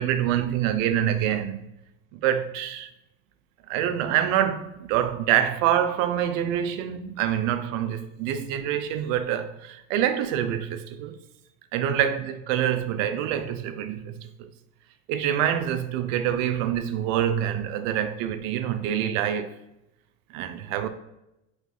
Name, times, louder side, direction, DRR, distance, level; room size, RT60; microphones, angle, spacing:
voice 1, 0.0-1.6 2.1-2.9 3.7-11.2 11.7-14.5 15.1-19.5 20.3-20.9, right 10 dB, 65° right, 0.5 m, -26 dB
4.6 x 3.1 x 2.5 m
hypercardioid pair, 75°, 43 cm